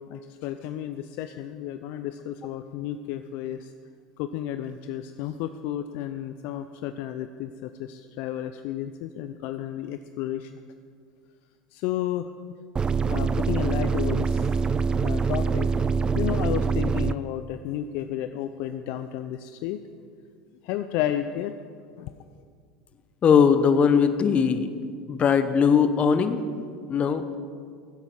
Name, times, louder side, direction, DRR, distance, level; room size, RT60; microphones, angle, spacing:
voice 1, 0.0-3.7 4.2-10.5 11.7-12.3 13.1-14.6 15.0-15.7 16.1-19.8 20.6-21.5 21.8-22.1, left 11 dB, 60° left, 10 dB, 0.5 m, -32 dB
sound 1, 12.8-17.2, right 5 dB, 20° right, 0.3 m, -24 dB
voice 2, 23.2-24.7 25.1-26.4 26.9-27.4, left 6 dB, 35° left, 10 dB, 1.0 m, -20 dB
16.0 x 8.0 x 6.1 m, 2.1 s
hypercardioid pair, 80°, 4 cm